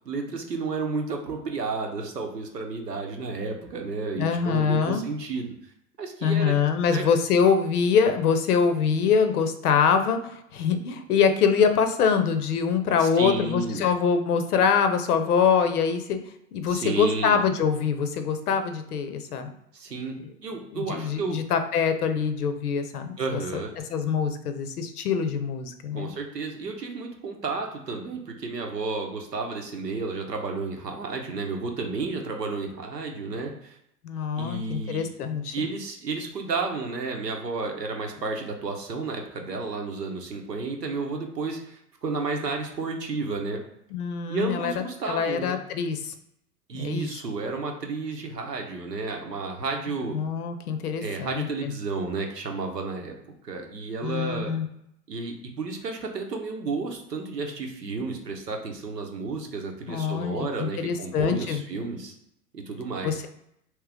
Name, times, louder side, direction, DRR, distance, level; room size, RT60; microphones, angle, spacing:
voice 1, 0.0-5.5 6.0-6.6 6.9-7.0 13.0-13.8 16.7-17.4 19.7-20.2 20.4-21.4 23.2-23.7 25.9-33.8 34.4-35.0 35.5-43.6 44.3-45.6 46.7-50.2 51.0-53.2 53.4-54.5 55.1-62.1 62.5-63.2, right 3 dB, 85° right, 3 dB, 0.9 m, -32 dB
voice 2, 4.2-5.0 6.2-16.2 16.5-19.5 20.2-20.3 20.7-26.1 34.0-35.6 43.9-44.7 45.1-46.1 46.7-47.2 50.1-51.7 54.0-54.6 59.9-61.6 63.0-63.1, left 6 dB, 70° left, 8 dB, 0.7 m, -24 dB
3.2 x 3.0 x 3.4 m, 0.77 s
figure-of-eight pair, 95°, 47 cm